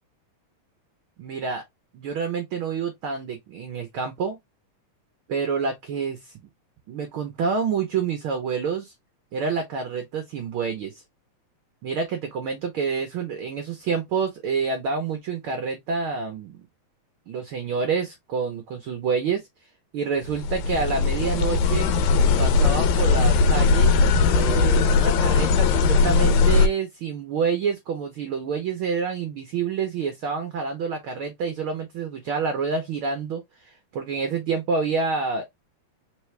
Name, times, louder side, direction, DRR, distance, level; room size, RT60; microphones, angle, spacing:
voice 1, 1.2-1.6 1.9-4.4 5.3-6.5 6.9-8.9 9.3-11.0 11.8-16.7 17.3-19.5 19.9-21.9 22.4-35.5, right 5 dB, 75° right, 1.2 m, -28 dB
sound 1, 20.2-26.7, left 4 dB, 85° left, 2.1 m, -19 dB
4.6 x 3.2 x 3.2 m
omnidirectional pair, 3.4 m